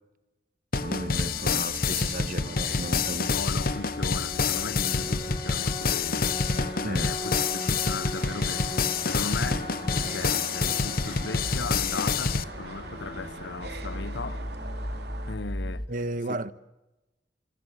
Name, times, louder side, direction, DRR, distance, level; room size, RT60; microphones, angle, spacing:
sound 1, 0.7-12.4, left 5 dB, 55° left, 1.0 m, -28 dB
sound 2, 0.7-15.9, left 1 dB, 25° left, 1.4 m, -38 dB
voice 1, 0.7-3.4 6.8-7.1 15.9-16.5, right 2 dB, 50° right, 1.4 m, -34 dB
sound 3, 0.8-15.3, right 3 dB, 65° right, 3.0 m, -43 dB
voice 2, 3.3-6.3 6.8-14.5 15.3-15.9 16.3-16.4, left 4 dB, 90° left, 0.8 m, -37 dB
26.0 x 24.0 x 8.3 m
head